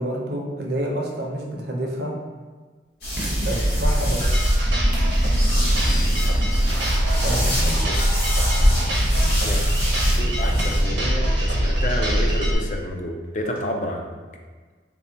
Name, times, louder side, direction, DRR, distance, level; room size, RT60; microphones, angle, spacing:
voice 1, 0.0-2.1 3.4-4.2 7.2-7.8, right 1 dB, 65° right, -1 dB, 0.6 m, -28 dB
sound 1, 2.8-13.6, right 1 dB, 10° right, 0.5 m, -41 dB
sound 2, 3.0-10.8, equal, 65° left, 1.4 m, -25 dB
sound 3, 4.2-12.5, equal, 90° right, 0.9 m, -21 dB
voice 2, 10.2-14.1, left 1 dB, 40° left, 2 dB, 0.4 m, -30 dB
3.4 x 2.2 x 3.8 m, 1.4 s
head